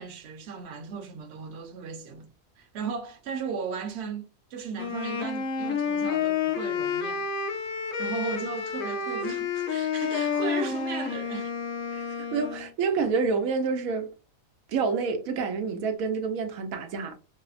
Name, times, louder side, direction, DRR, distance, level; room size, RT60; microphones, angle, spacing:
voice 1, 0.0-2.3 2.6-7.3 8.0-11.5, right 6 dB, 55° right, 0.9 m, -36 dB
Wind instrument woodwind instrument, 4.8-12.7, left 6 dB, 80° left, 1.1 m, -30 dB
voice 2, 11.9-14.1 14.7-17.2, right 5 dB, 80° right, 1.0 m, -28 dB
4.8 x 2.0 x 2.4 m
omnidirectional pair, 1.4 m